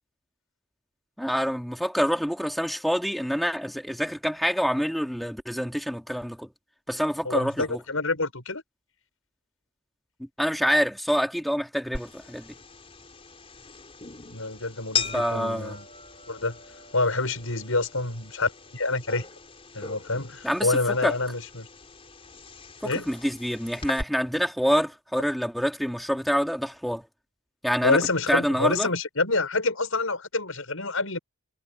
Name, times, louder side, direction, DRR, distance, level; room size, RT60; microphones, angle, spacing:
voice 1, 1.2-6.5 6.9-7.8 10.2-12.6 15.1-15.7 20.4-21.1 22.8-27.1 27.6-28.0 28.3-28.9, equal, ahead, 2.7 m, -26 dB
voice 2, 7.2-8.6 14.3-15.9 16.3-16.6 16.9-19.2 19.7-21.7 22.8-23.1 27.8-31.2, left 3 dB, 75° left, 6.4 m, -27 dB
sound 1, 11.9-24.0, left 6 dB, 30° left, 4.2 m, -39 dB
head